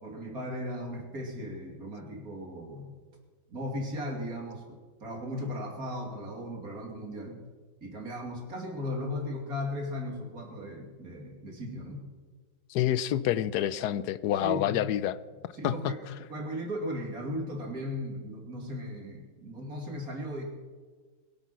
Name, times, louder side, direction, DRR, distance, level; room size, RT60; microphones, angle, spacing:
voice 1, 0.0-3.0 3.5-7.4 7.8-12.0 14.4-14.8 15.5-16.0 16.3-20.4, left 1 dB, 45° right, 1 dB, 3.1 m, -37 dB
voice 2, 12.7-15.2 15.6-15.9, left 11 dB, 70° left, 16 dB, 0.9 m, -28 dB
22.5 x 8.1 x 6.1 m, 1.5 s
omnidirectional pair, 2.2 m